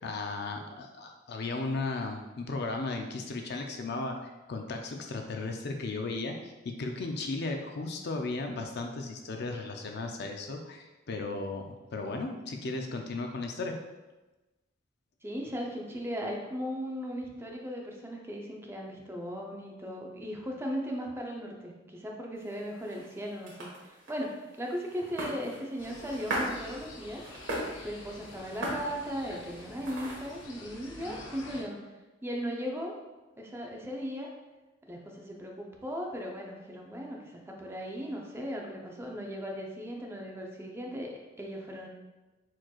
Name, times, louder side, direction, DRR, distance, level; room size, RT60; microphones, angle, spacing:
voice 1, 0.0-11.7 11.9-13.7, left 3 dB, 60° left, 4 dB, 0.5 m, -35 dB
voice 2, 15.2-27.2 27.8-31.8 32.2-32.9 33.4-34.3 34.9-41.9, equal, 15° right, 0 dB, 0.6 m, -37 dB
sound 1, 22.4-30.4, right 1 dB, 80° right, 1.5 m, -39 dB
sound 2, 25.8-31.6, left 2 dB, 75° left, 1.0 m, -48 dB
4.5 x 4.4 x 2.4 m, 1.1 s
head